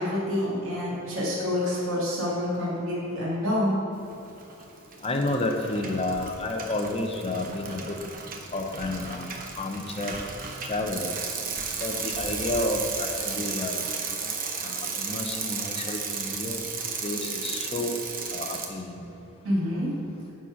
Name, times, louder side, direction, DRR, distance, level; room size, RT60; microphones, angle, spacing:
voice 1, 0.0-3.8 19.4-19.9, left 1 dB, 75° right, -6 dB, 2.0 m, -27 dB
Bicycle, 4.2-4.6 4.9-18.7, right 5 dB, 45° right, 0.8 m, -34 dB
voice 2, 5.0-8.0 8.5-9.3 9.6-10.1 10.6-11.1 11.8-13.8 14.6-16.6 17.0-18.0 18.3-19.1, left 2 dB, 30° left, 2 dB, 0.7 m, -30 dB
9.8 x 4.2 x 5.8 m, 2.8 s
head